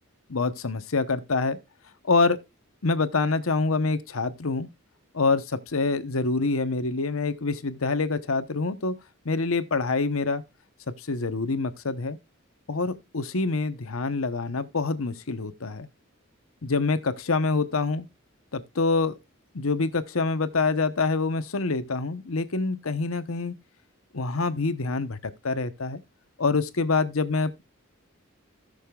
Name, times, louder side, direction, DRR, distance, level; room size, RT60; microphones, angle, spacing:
voice 1, 0.3-1.6 2.1-2.4 2.8-4.7 5.1-8.9 9.2-10.4 11.1-12.2 12.7-15.9 16.6-18.1 18.5-19.1 19.5-23.5 24.1-25.2 25.4-26.0 26.4-27.6, left 3 dB, 85° left, 1.0 m, -26 dB
17.5 x 6.6 x 2.4 m
head